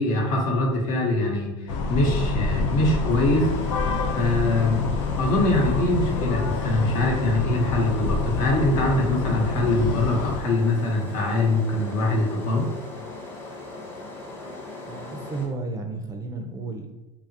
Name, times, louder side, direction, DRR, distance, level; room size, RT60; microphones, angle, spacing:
voice 1, 0.0-1.5 1.9-3.5 4.1-4.8 5.2-12.7, left 2 dB, 60° left, 0 dB, 0.8 m, -23 dB
sound 1, 1.7-10.4, left 4 dB, 75° left, 0.4 m, -27 dB
sound 2, 1.8-15.5, left 2 dB, 15° left, 0.7 m, -39 dB
voice 2, 14.9-16.9, right 3 dB, 20° right, 5 dB, 0.4 m, -33 dB
2.8 x 2.4 x 2.6 m, 0.99 s
supercardioid pair, 100°, 16 cm